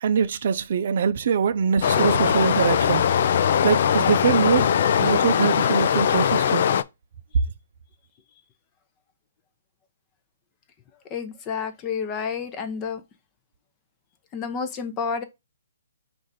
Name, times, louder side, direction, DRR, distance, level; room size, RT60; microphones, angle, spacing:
voice 1, 0.0-3.0 3.6-4.7 5.0-6.6, right 7 dB, 55° right, 0.5 m, -23 dB
Stream, 1.8-6.8, left 8 dB, 55° left, 0.3 m, -21 dB
voice 2, 11.1-13.0 14.3-15.2, left 6 dB, 25° left, 0.7 m, -30 dB
4.9 x 2.6 x 4.0 m
hypercardioid pair, 145°, 0 cm